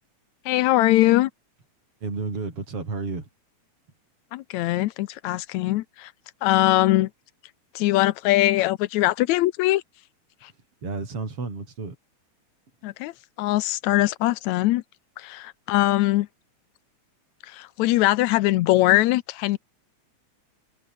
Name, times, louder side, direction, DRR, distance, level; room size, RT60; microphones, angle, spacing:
voice 1, 0.5-1.3 4.3-6.1 6.4-7.1 7.8-9.8 12.8-13.1 13.4-14.8 15.2-16.3 17.5-19.6, left 17 dB, 80° left, 1.9 m, -21 dB
voice 2, 2.0-3.3 10.8-12.0, right 4 dB, 50° right, 6.3 m, -31 dB
omnidirectional pair, 3.4 m